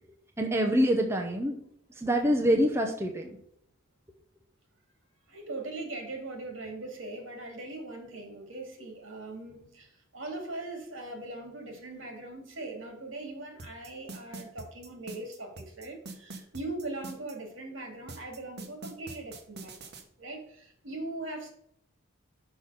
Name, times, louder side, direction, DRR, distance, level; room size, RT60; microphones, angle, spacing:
voice 1, 0.4-1.6 2.0-3.4, equal, 15° right, 2 dB, 0.7 m, -25 dB
voice 2, 5.3-21.5, right 2 dB, 70° right, 3 dB, 2.6 m, -40 dB
sound 1, 13.6-17.3 18.1-20.0, right 3 dB, 55° right, 1.2 m, -43 dB
6.2 x 5.3 x 6.6 m, 0.70 s
head